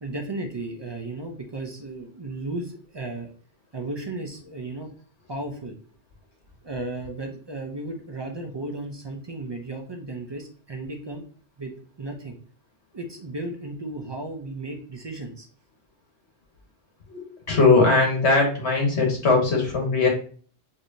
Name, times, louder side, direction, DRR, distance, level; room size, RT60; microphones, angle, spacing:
voice 1, 0.0-3.3 3.7-4.9 5.3-5.7 6.6-11.2 11.6-12.4 12.9-15.5, right 2 dB, 40° right, 3 dB, 0.4 m, -34 dB
voice 2, 17.1-20.1, left 3 dB, 70° left, 0 dB, 1.5 m, -20 dB
4.8 x 2.7 x 2.6 m, 0.44 s
omnidirectional pair, 1.2 m